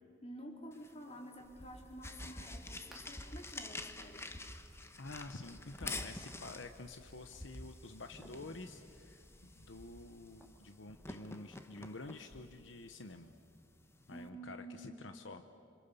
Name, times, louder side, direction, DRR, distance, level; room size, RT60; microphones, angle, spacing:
voice 1, 0.2-4.3 14.1-15.1, right 1 dB, 35° left, 1 dB, 3.8 m, -50 dB
sound 1, 0.7-14.3, left 2 dB, 15° left, 1.2 m, -50 dB
sound 2, 1.4-10.6, equal, ahead, 2.9 m, -54 dB
voice 2, 5.0-9.2 9.5-13.3 14.1-15.4, left 2 dB, 80° left, 8 dB, 1.0 m, -49 dB
28.0 x 26.0 x 7.0 m, 2.6 s
head